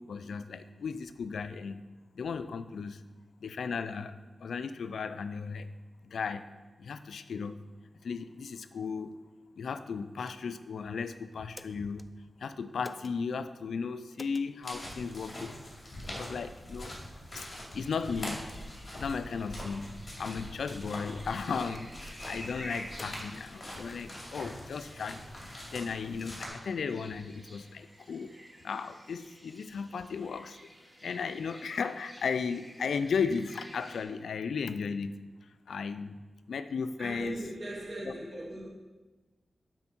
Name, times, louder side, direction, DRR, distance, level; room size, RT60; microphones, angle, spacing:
voice 1, 0.0-1.9 2.2-3.0 3.4-5.7 6.0-6.5 6.8-7.6 8.0-9.2 9.6-12.1 12.4-15.6 16.1-16.9 17.3-17.5 17.7-18.4 18.9-19.9 20.2-25.2 25.7-28.4 28.6-30.6 31.0-35.2 35.7-36.2 36.5-37.4 38.0-38.1, left 5 dB, 90° left, 0.4 m, -35 dB
sound 1, 10.2-10.7 11.3-12.1 12.8-13.2 14.1-14.5 15.3-15.4 16.0-16.2 16.8-17.0 17.6-17.7 18.3-18.6 19.4-19.8 20.6-21.2 21.7-22.2 22.9-23.3, left 1 dB, 20° left, 0.4 m, -52 dB
sound 2, 14.6-26.5, left 1 dB, 40° left, 2.8 m, -43 dB
sound 3, 17.7-34.0, equal, 10° right, 2.8 m, -52 dB
voice 2, 37.0-38.7, right 1 dB, 50° right, 2.8 m, -38 dB
7.7 x 4.4 x 6.0 m
cardioid pair, 60°, 0 cm